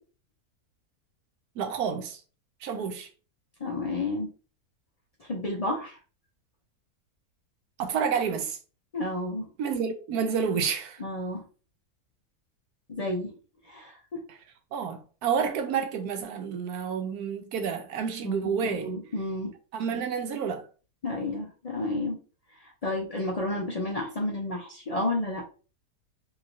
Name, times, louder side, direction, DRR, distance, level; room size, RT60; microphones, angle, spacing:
voice 1, 1.6-2.2 2.6-3.1 7.8-8.6 9.6-11.0 14.7-18.9 19.7-20.7, right 6 dB, 85° right, 1.1 m, -29 dB
voice 2, 3.6-4.3 5.2-6.0 8.9-9.5 11.0-11.4 12.9-13.3 13.6-14.2 18.2-19.5 21.0-22.2 22.6-25.4, left 2 dB, 75° left, 0.3 m, -31 dB
3.0 x 2.7 x 2.5 m
omnidirectional pair, 1.6 m